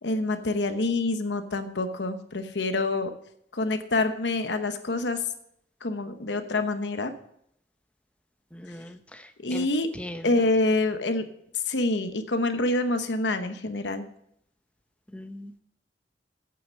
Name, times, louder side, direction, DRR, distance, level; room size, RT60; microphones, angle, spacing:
voice 1, 0.0-3.1 3.5-5.2 5.8-7.1 9.4-9.9 10.2-11.2 11.5-14.1, left 2 dB, 90° left, 8 dB, 1.0 m, -26 dB
voice 2, 8.5-9.7 9.9-10.6 15.1-15.6, left 1 dB, 5° left, 8 dB, 0.8 m, -40 dB
8.9 x 7.9 x 6.4 m, 0.71 s
head